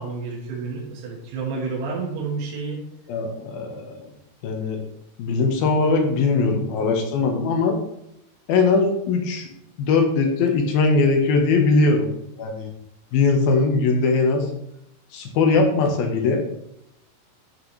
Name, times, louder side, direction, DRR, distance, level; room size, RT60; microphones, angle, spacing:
voice 1, 0.0-2.8, right 4 dB, 80° right, -4 dB, 3.6 m, -30 dB
voice 2, 3.1-4.1 4.4-4.8 5.2-7.8 8.5-9.5 9.9-12.1 12.4-12.7 13.1-14.5 15.1-16.4, left 4 dB, 70° left, 3 dB, 2.8 m, -20 dB
12.0 x 5.9 x 3.2 m, 0.81 s
omnidirectional pair, 4.9 m